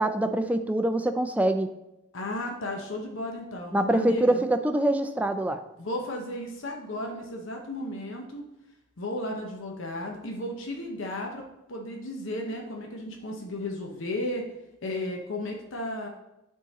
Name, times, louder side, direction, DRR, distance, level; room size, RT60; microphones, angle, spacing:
voice 1, 0.0-1.7 3.7-5.6, right 1 dB, 5° right, 7 dB, 0.3 m, -24 dB
voice 2, 2.1-4.4 5.8-8.5 9.0-11.4 11.7-14.5 14.8-16.1, left 1 dB, 70° left, 1 dB, 0.8 m, -34 dB
8.3 x 3.7 x 4.1 m, 0.91 s
head